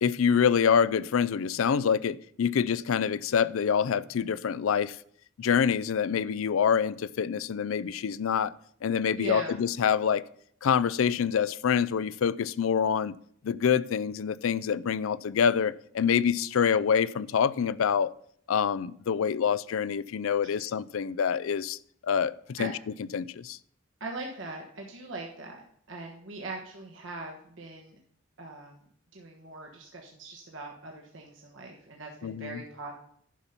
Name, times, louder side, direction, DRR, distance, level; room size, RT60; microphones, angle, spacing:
voice 1, 0.0-5.0 5.4-8.5 8.8-10.2 10.6-13.1 13.4-18.1 18.5-21.8 22.0-22.7 23.1-23.6 32.2-32.6, left 7 dB, 80° left, 0.4 m, -26 dB
voice 2, 9.2-9.6 20.4-20.6 22.6-22.7 24.0-28.0 28.4-28.8 29.1-32.9, right 2 dB, 70° right, 1.3 m, -41 dB
11.0 x 5.3 x 5.8 m
head